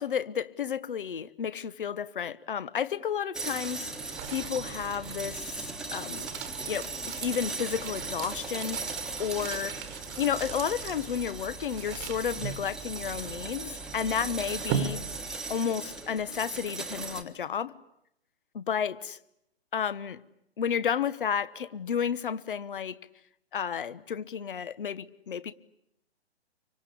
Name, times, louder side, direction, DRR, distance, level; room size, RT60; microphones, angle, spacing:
voice 1, 0.0-3.9 4.3-6.3 6.7-15.0 15.5-17.7 18.5-19.2 19.7-20.2 20.6-23.0 23.5-25.5, left 8 dB, 50° left, 1.2 m, -32 dB
sound 1, 3.3-17.2, right 3 dB, ahead, 1.4 m, -38 dB
sound 2, 3.5-15.6, right 8 dB, 20° right, 1.5 m, -40 dB
27.5 x 24.5 x 8.5 m
figure-of-eight pair, 130°, 33 cm